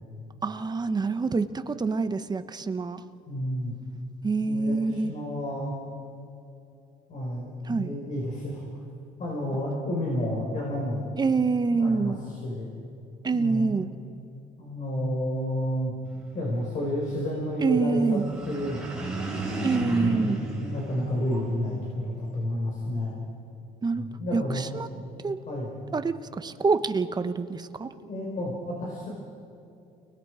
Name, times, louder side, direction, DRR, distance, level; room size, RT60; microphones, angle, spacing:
voice 1, 0.4-3.0 4.2-5.1 7.7-7.9 11.2-12.2 13.2-13.9 17.6-18.3 19.6-20.4 23.8-24.1 24.3-24.9 25.2-25.4 25.9-27.9, right 4 dB, 25° right, 10 dB, 1.0 m, -26 dB
voice 2, 3.3-3.7 4.4-5.7 7.1-8.6 9.2-11.1 11.7-12.7 13.3-13.7 14.6-15.9 16.3-18.2 18.4-19.2 19.8-23.1 23.9-24.6 24.9-25.1 25.5-25.8 28.0-29.1, equal, 50° left, -3 dB, 5.2 m, -31 dB
sound 1, 18.1-21.7, right 2 dB, 5° right, 4.7 m, -33 dB
29.5 x 20.0 x 4.9 m, 2.7 s
cardioid pair, 110°, 17 cm